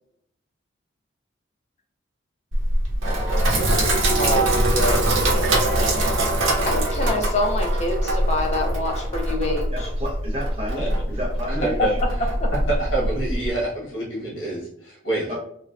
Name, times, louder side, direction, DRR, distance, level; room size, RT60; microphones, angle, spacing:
Sink (filling or washing), 2.5-13.5, right 1 dB, 80° right, 0.7 m, -22 dB
voice 1, 4.2-5.0 6.7-9.9 11.8-11.9 12.4-12.5, left 2 dB, 35° left, 3 dB, 0.4 m, -26 dB
voice 2, 9.7-12.0 15.3-15.4, equal, 30° right, 0 dB, 0.6 m, -31 dB
voice 3, 11.5-11.9 12.5-15.3, right 2 dB, 85° left, -5 dB, 1.3 m, -27 dB
3.2 x 2.3 x 2.3 m, 0.69 s
head